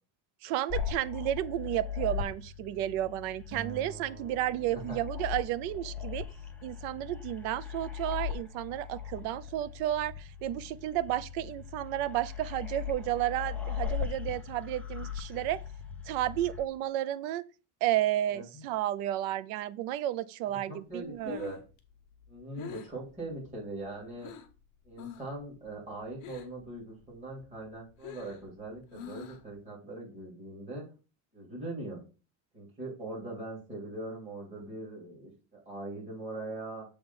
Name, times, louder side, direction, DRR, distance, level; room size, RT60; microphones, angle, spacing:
voice 1, 0.4-6.2 6.6-15.6 16.1-17.4 17.8-21.4, right 13 dB, 80° right, 0.7 m, -32 dB
sound 1, 0.7-16.6, left 8 dB, 5° left, 0.4 m, -39 dB
Acoustic guitar, 3.5-5.9, right 7 dB, 40° right, 0.9 m, -47 dB
voice 2, 18.3-18.6 20.7-21.6 22.3-24.3 24.8-30.8 31.3-32.0 32.5-36.9, right 2 dB, 15° right, 2.9 m, -41 dB
Breathing, 21.0-24.6 24.9-25.4 25.7-26.7 27.0-29.6, left 8 dB, 50° left, 1.1 m, -46 dB
7.0 x 3.5 x 5.4 m
cardioid pair, 175°, 43 cm